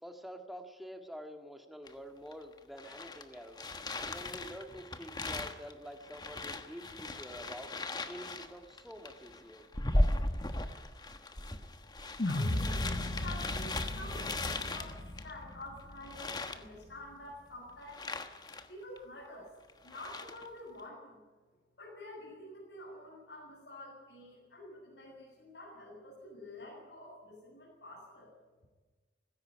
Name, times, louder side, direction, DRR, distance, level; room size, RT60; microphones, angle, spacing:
voice 1, 0.0-3.6 4.0-7.7 8.1-9.7, equal, ahead, 5 dB, 1.9 m, -47 dB
sound 1, 1.9-2.0 2.3-15.6 16.0-16.6 17.9-18.7 19.0-19.1 19.7-20.5, left 1 dB, 20° left, 1.2 m, -37 dB
voice 2, 12.2-18.1 18.7-19.5 19.8-21.2 21.8-28.3, left 1 dB, 75° left, -4 dB, 7.8 m, -48 dB
sound 2, 12.2-16.5, left 1 dB, 50° left, 1.2 m, -36 dB
19.0 x 16.5 x 10.0 m, 1.3 s
head